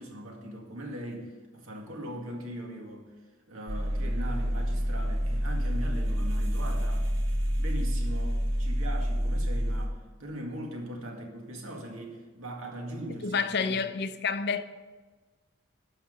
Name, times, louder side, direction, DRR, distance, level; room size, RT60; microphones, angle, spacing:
voice 1, 0.0-3.1 3.5-7.1 7.6-13.8, right 1 dB, 85° right, 2.1 m, -40 dB
sound 1, 3.7-9.9, equal, 60° right, 1.6 m, -28 dB
voice 2, 13.2-14.8, left 5 dB, 55° left, 0.6 m, -29 dB
12.0 x 5.9 x 6.9 m
head